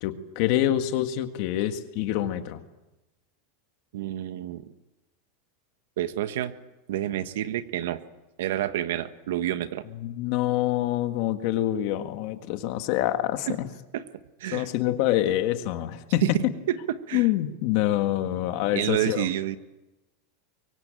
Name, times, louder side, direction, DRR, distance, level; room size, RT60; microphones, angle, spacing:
voice 1, 0.0-2.6 10.0-13.7 14.5-16.5 17.1-19.3, left 13 dB, 45° left, 8 dB, 1.7 m, -26 dB
voice 2, 3.9-4.6 6.0-6.5 6.9-8.0 8.4-9.8 13.5-13.6 13.9-14.0 14.4-14.7 16.2-16.3 16.7-17.3 18.7-19.6, right 12 dB, 75° right, 11 dB, 1.4 m, -28 dB
24.5 x 23.5 x 9.0 m, 1.0 s
supercardioid pair, 180°, 0 cm